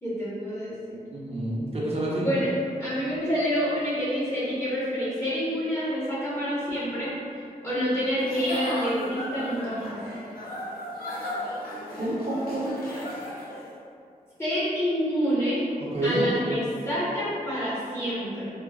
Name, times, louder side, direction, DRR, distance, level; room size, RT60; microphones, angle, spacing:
voice 1, 0.0-1.0 2.2-2.5 2.8-7.1 7.6-9.9 14.4-15.6 16.0-18.5, equal, 15° left, -11 dB, 1.3 m, -27 dB
voice 2, 1.1-2.3 11.9-12.8 15.9-16.2, right 1 dB, 45° right, -6 dB, 0.8 m, -28 dB
Giggle / Chuckle chortle, 8.2-13.7, left 1 dB, 85° left, 0.7 m, -35 dB
4.0 x 2.5 x 2.4 m, 2.4 s
wide cardioid pair, 95°, 15 cm